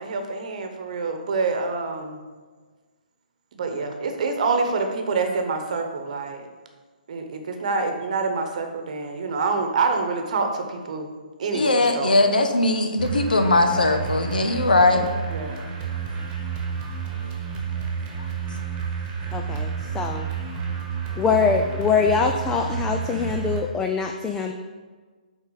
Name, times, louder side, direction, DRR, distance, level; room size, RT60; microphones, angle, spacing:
voice 1, 0.0-2.2 3.5-6.5 7.1-11.1 11.4-12.2 15.3-15.6, right 4 dB, 50° right, 5 dB, 1.0 m, -26 dB
voice 2, 11.5-15.1 18.2-18.3, left 2 dB, 75° left, 6 dB, 1.0 m, -20 dB
sound 1, 13.0-23.6, right 6 dB, 20° right, 1.4 m, -30 dB
voice 3, 19.3-19.7 19.9-20.3 21.2-24.5, left 5 dB, 10° left, 4 dB, 0.4 m, -23 dB
9.5 x 3.9 x 4.0 m, 1.4 s
figure-of-eight pair, 135°, 5 cm